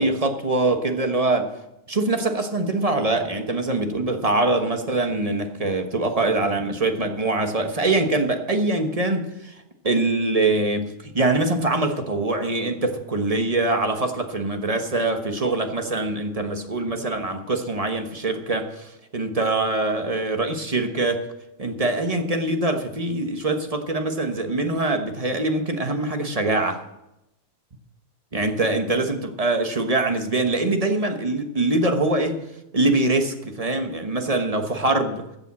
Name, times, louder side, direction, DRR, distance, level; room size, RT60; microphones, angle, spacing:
voice 1, 0.0-1.5 1.9-9.5 9.8-21.2 21.6-26.8 28.3-32.4 32.7-35.3, right 2 dB, 30° right, 5 dB, 1.2 m, -23 dB
14.0 x 7.1 x 7.4 m, 0.90 s
omnidirectional pair, 1.4 m